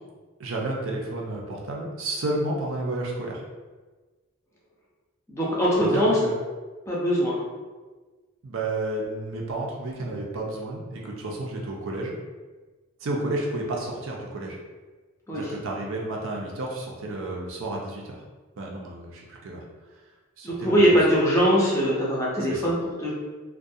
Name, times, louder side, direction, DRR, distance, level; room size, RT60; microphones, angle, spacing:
voice 1, 0.4-3.4 5.8-6.3 8.4-12.2 13.0-14.6 15.3-18.2 18.6-19.6 20.4-20.9 22.5-22.7, right 2 dB, 65° right, -2 dB, 0.5 m, -31 dB
voice 2, 5.3-6.2 6.9-7.4 15.3-15.4 20.4-23.1, equal, 15° left, -6 dB, 0.5 m, -22 dB
2.3 x 2.2 x 2.6 m, 1.3 s
head